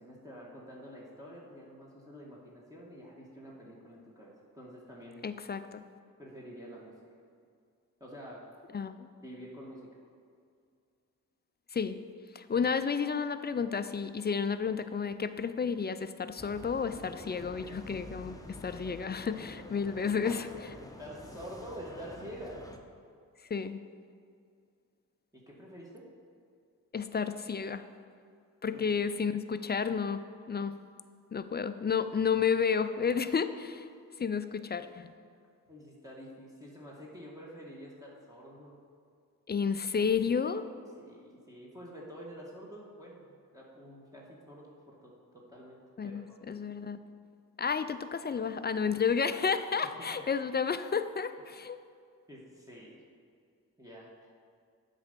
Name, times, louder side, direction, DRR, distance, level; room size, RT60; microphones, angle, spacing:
voice 1, 0.0-5.2 6.2-6.9 8.0-8.4 9.2-9.9 20.8-22.6 25.3-26.1 28.7-28.8 35.7-38.7 41.0-43.2 43.5-46.4 49.8-50.3 52.3-53.0 53.8-54.3, equal, 10° right, -5 dB, 1.6 m, -48 dB
voice 2, 5.2-5.8 8.7-9.1 11.7-12.0 12.3-20.8 23.5-23.8 26.9-27.8 28.6-30.8 31.3-33.9 34.2-35.1 39.5-40.7 46.0-47.0 47.6-51.8, left 6 dB, 25° left, 11 dB, 0.4 m, -31 dB
sound 1, 16.4-22.8, left 2 dB, 10° left, 0.9 m, -47 dB
7.9 x 4.1 x 6.7 m, 2.3 s
supercardioid pair, 45°, 38 cm